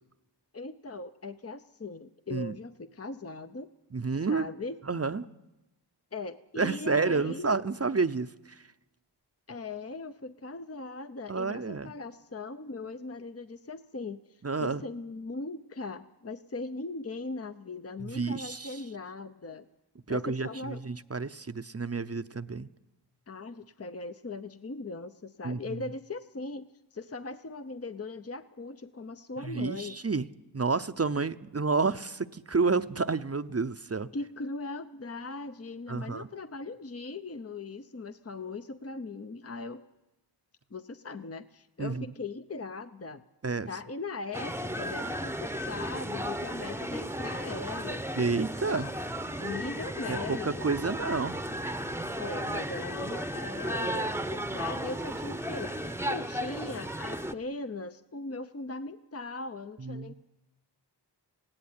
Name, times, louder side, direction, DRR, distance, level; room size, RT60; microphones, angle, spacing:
voice 1, 0.5-3.7 4.1-4.8 6.1-7.5 9.5-19.6 20.1-20.8 23.3-30.0 34.1-39.8 40.7-43.2 43.7-48.1 48.7-48.9 49.4-50.7 52.2-60.1, left 3 dB, 35° left, 10 dB, 0.8 m, -39 dB
voice 2, 3.9-4.5 4.9-5.3 6.6-8.3 11.3-11.9 14.4-14.8 18.0-18.8 20.1-22.7 25.4-25.8 29.4-30.3 30.5-34.1 35.9-36.3 41.8-42.1 43.4-43.7 48.2-48.9 50.1-51.4 59.8-60.1, right 4 dB, 35° right, 11 dB, 0.7 m, -30 dB
sound 1, 44.3-57.3, equal, 5° right, 0.9 m, -34 dB
19.0 x 16.0 x 9.7 m, 0.98 s
wide cardioid pair, 50°, 42 cm